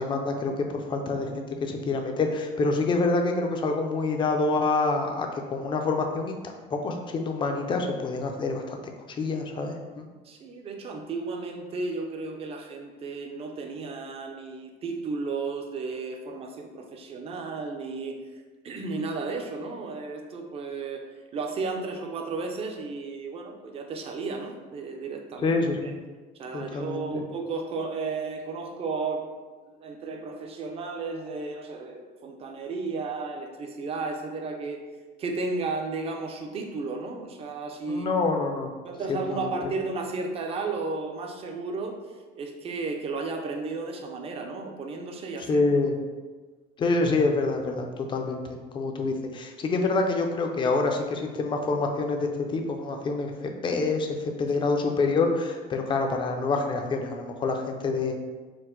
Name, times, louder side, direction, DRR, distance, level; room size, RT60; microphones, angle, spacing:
voice 1, 0.0-6.3 6.7-8.8 9.2-10.1 25.4-25.9 26.5-27.2 37.9-38.7 39.1-39.5 45.5-45.9 46.8-48.4 48.7-58.1, left 3 dB, 25° left, 4 dB, 0.4 m, -27 dB
voice 2, 10.2-18.2 18.6-21.0 21.3-25.9 26.4-29.3 29.7-34.8 35.2-38.1 38.8-42.0 42.3-45.7, right 3 dB, 30° right, 4 dB, 0.5 m, -33 dB
4.5 x 2.1 x 3.7 m, 1.3 s
cardioid pair, 140°, 20 cm